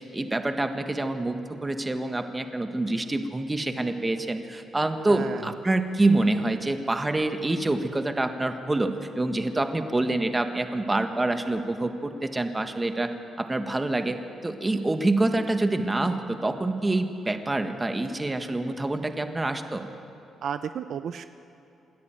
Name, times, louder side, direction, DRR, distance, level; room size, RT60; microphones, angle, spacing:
voice 1, 0.0-13.1 13.4-19.8, right 2 dB, 20° right, 7 dB, 1.5 m, -26 dB
voice 2, 5.1-5.4 20.4-21.2, right 8 dB, 65° right, 11 dB, 0.6 m, -32 dB
26.5 x 11.0 x 9.1 m, 2.9 s
cardioid pair, 85°, 0 cm